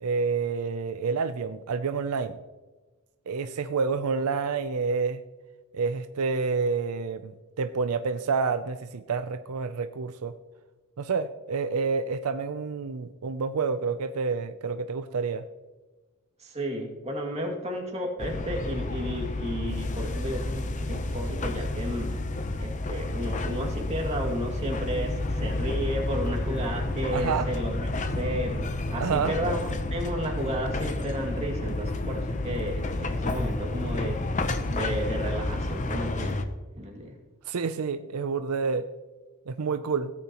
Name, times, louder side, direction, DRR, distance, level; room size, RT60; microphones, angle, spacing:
voice 1, 0.0-2.4 3.3-5.2 5.7-7.3 7.6-10.4 11.0-15.4 27.1-27.5 29.0-29.3 37.5-38.9 39.5-40.1, right 5 dB, 80° right, 10 dB, 0.5 m, -28 dB
voice 2, 16.4-22.2 22.6-27.9 28.2-34.2 34.7-36.4 36.8-37.1, equal, 30° right, 0 dB, 2.3 m, -33 dB
sound 1, 18.2-36.4, left 2 dB, 35° left, 0.7 m, -30 dB
17.0 x 8.5 x 3.0 m, 1.2 s
head